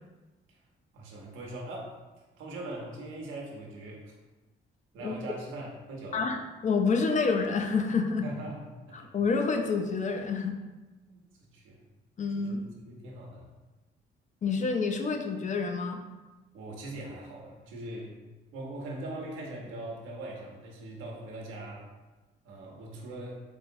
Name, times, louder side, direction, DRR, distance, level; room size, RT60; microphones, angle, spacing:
voice 1, 0.9-2.0 2.4-4.1 4.9-6.3 8.2-9.0 11.1-11.2 11.5-11.8 12.4-13.5 16.5-18.1 18.5-21.9 22.4-23.4, right 1 dB, 90° right, -1 dB, 0.9 m, -41 dB
voice 2, 6.1-8.3 8.9-10.5 12.2-12.6 14.4-16.0, left 4 dB, 40° left, 4 dB, 0.4 m, -28 dB
4.5 x 2.8 x 2.6 m, 1.1 s
cardioid pair, 90°, 20 cm